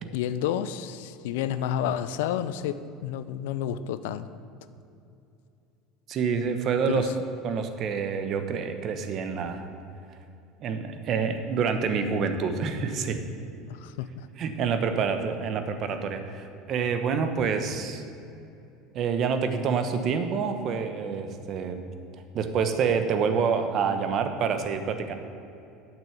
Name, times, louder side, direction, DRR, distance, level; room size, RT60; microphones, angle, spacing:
voice 1, 0.1-4.3 6.9-7.1 13.7-14.3, left 10 dB, 75° left, 13 dB, 0.5 m, -30 dB
voice 2, 6.1-7.1 7.4-9.6 10.6-13.2 14.4-18.0 18.9-21.8 22.3-25.1, right 6 dB, 50° right, 7 dB, 1.1 m, -27 dB
8.9 x 6.2 x 8.0 m, 2.7 s
hypercardioid pair, 85°, 0 cm